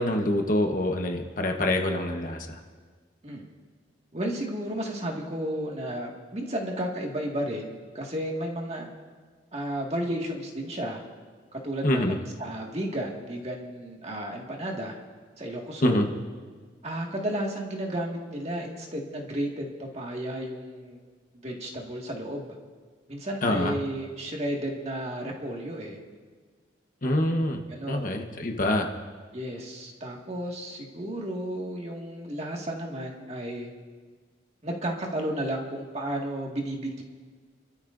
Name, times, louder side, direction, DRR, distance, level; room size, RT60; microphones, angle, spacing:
voice 1, 0.0-2.6 11.8-12.1 15.8-16.1 23.4-23.7 27.0-27.6 27.9-28.9, left 1 dB, 45° left, 3 dB, 1.2 m, -25 dB
voice 2, 4.1-8.9 9.5-11.0 11.5-14.9 15.4-16.1 16.8-21.0 21.4-22.6 23.1-26.0 27.1-27.4 27.7-28.2 29.3-33.7 34.6-37.0, right 1 dB, 35° right, 0 dB, 2.0 m, -33 dB
29.5 x 13.5 x 2.7 m, 1.5 s
head